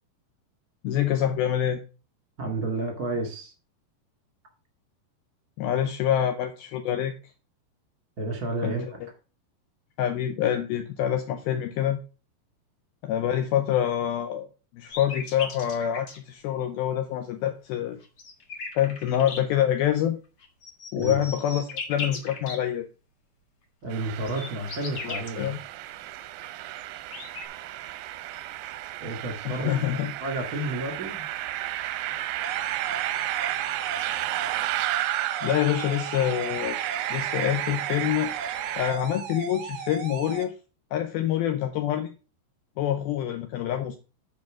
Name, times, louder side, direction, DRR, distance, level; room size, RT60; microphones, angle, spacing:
voice 1, 0.8-1.8 5.6-7.1 8.6-8.8 10.0-12.0 13.0-14.5 14.7-18.0 18.8-20.2 20.9-22.9 25.0-25.6 29.5-30.1 32.1-32.2 35.4-36.8 37.1-38.3 38.7-40.5 40.9-42.1 42.8-44.0, left 10 dB, 75° left, 6 dB, 2.4 m, -26 dB
voice 2, 2.4-3.5 8.2-9.0 20.9-21.2 23.8-25.5 29.0-31.3, right 2 dB, 40° right, 4 dB, 1.3 m, -31 dB
sound 1, 14.9-16.2 18.0-19.4 20.4-22.6 24.0-25.3 26.5-26.6 26.8-27.4, left 4 dB, 60° left, 1.0 m, -37 dB
sound 2, 23.9-38.9, right 14 dB, 90° right, 3.0 m, -32 dB
sound 3, 32.4-40.4, right 6 dB, 70° right, 1.2 m, -37 dB
9.4 x 5.1 x 6.2 m, 0.34 s
omnidirectional pair, 5.0 m